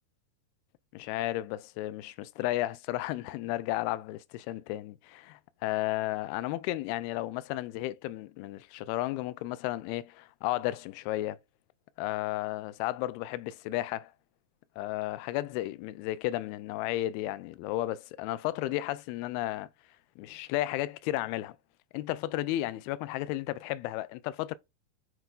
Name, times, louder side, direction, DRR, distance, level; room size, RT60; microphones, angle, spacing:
voice 1, 0.9-11.4 12.0-14.1 14.8-19.7 20.2-21.6 21.9-24.6, left 16 dB, 85° left, 2.4 m, -33 dB
8.1 x 4.5 x 3.8 m
omnidirectional pair, 4.5 m